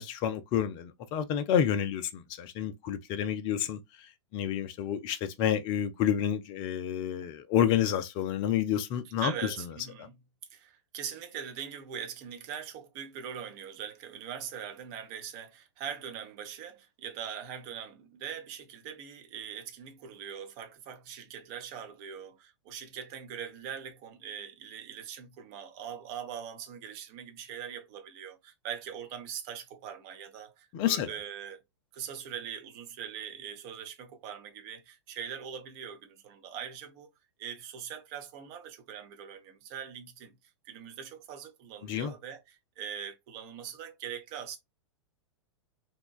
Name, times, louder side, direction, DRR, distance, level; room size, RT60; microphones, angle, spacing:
voice 1, 0.0-9.7 10.0-10.1 30.7-31.1 41.8-42.1, left 9 dB, 35° left, 0.4 m, -29 dB
voice 2, 9.2-10.1 10.5-31.6 31.9-37.1 37.4-40.3 40.6-42.4 42.8-44.6, right 8 dB, 40° right, 0.7 m, -42 dB
2.9 x 2.2 x 2.2 m
figure-of-eight pair, 100°, 15 cm